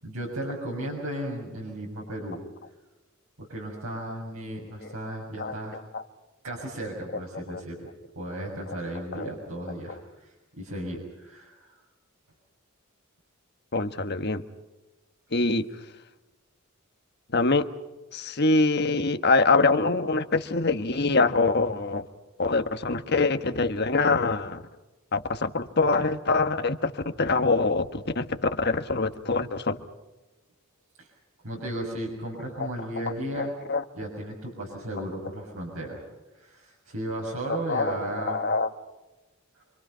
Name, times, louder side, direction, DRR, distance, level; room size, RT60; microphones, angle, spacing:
voice 1, 0.0-2.4 3.4-5.8 6.4-7.9 8.1-11.8 31.0-31.1 31.4-33.5 33.9-36.0 36.4-38.4, right 1 dB, 90° right, -1 dB, 6.7 m, -35 dB
voice 2, 13.7-14.4 15.3-15.6 17.3-17.7 18.1-22.0 22.4-24.6 25.1-29.8 33.3-33.8 37.7-38.7, left 3 dB, 50° left, 8 dB, 1.4 m, -24 dB
28.0 x 26.0 x 5.7 m, 1.1 s
head